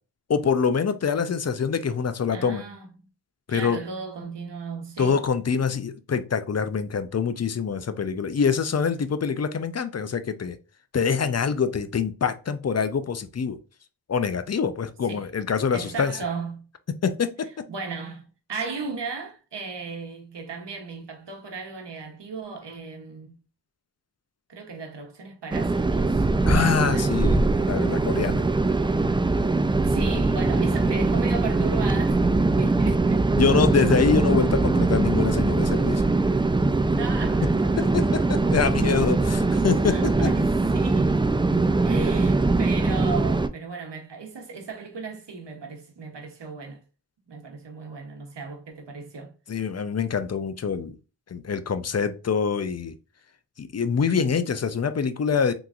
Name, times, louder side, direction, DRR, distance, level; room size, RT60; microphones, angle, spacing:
voice 1, 0.3-2.6 3.5-3.8 5.0-10.6 10.9-13.6 14.1-16.1 17.0-17.5 26.5-28.4 33.3-36.0 37.8-40.3 49.5-50.9 51.3-52.9 53.6-55.5, left 6 dB, 40° left, 0.5 m, -25 dB
voice 2, 2.3-2.9 3.5-5.2 15.1-15.3 15.7-16.7 17.7-23.3 24.5-26.3 26.5-27.2 29.8-32.3 32.6-33.2 36.9-38.1 39.9-41.2 41.8-46.8 47.3-49.3, right 4 dB, 80° right, 1.1 m, -36 dB
sound 1, 25.5-43.5, right 3 dB, 15° right, 0.3 m, -22 dB
3.6 x 3.0 x 2.5 m
cardioid pair, 45°, 42 cm